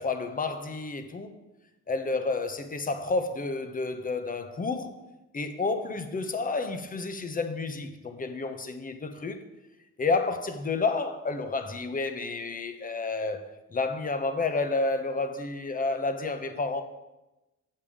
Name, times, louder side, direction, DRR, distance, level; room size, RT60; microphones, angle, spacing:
voice 1, 0.0-1.3 1.9-5.0 5.3-9.4 10.0-13.4 13.7-16.8, left 3 dB, 30° left, 0.9 m, -30 dB
7.6 x 6.8 x 5.0 m
cardioid pair, 90°, 30 cm